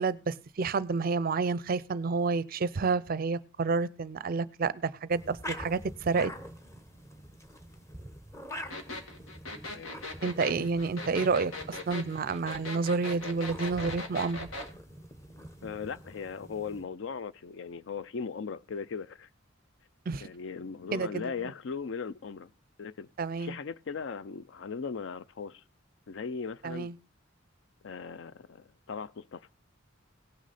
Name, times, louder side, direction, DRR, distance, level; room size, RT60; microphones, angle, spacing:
voice 1, 0.0-6.3 10.2-14.5 20.1-20.2 20.9-21.1 23.2-23.5 26.6-26.9, right 4 dB, 45° right, 0.4 m, -29 dB
sound 1, 5.1-16.8, equal, 15° left, 0.9 m, -46 dB
sound 2, 8.7-14.7, left 2 dB, 90° left, 1.8 m, -39 dB
voice 2, 9.7-10.0 15.6-19.3 20.2-22.5 22.8-23.1 23.4-25.6 26.1-26.9 27.8-29.5, left 5 dB, 65° left, 0.4 m, -38 dB
17.5 x 6.3 x 4.1 m
head